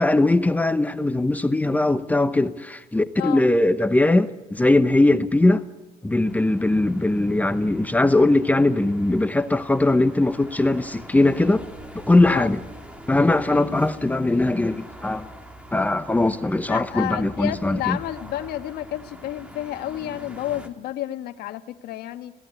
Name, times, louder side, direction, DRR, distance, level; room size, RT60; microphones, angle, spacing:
voice 1, 0.0-5.6 6.0-11.6 11.9-12.6 13.1-15.3 15.7-18.0, left 2 dB, 10° left, 0.9 m, -20 dB
voice 2, 3.2-3.5 12.2-12.6 13.5-13.8 16.7-22.3, left 13 dB, 75° left, 1.4 m, -31 dB
sound 1, 6.2-20.7, right 1 dB, 5° right, 2.4 m, -43 dB
21.0 x 17.0 x 9.4 m
cardioid pair, 125°, 16 cm